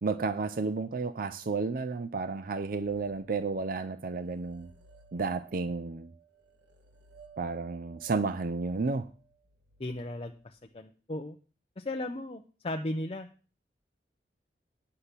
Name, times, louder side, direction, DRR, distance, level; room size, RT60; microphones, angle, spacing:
voice 1, 0.0-4.7 5.1-6.1 7.4-9.1, right 4 dB, 55° right, 0.5 m, -32 dB
sound 1, 2.6-3.8 4.1-10.6, right 5 dB, 85° right, 1.5 m, -59 dB
voice 2, 9.8-11.4 11.8-13.3, left 1 dB, 35° left, 0.6 m, -36 dB
9.8 x 5.8 x 6.7 m
head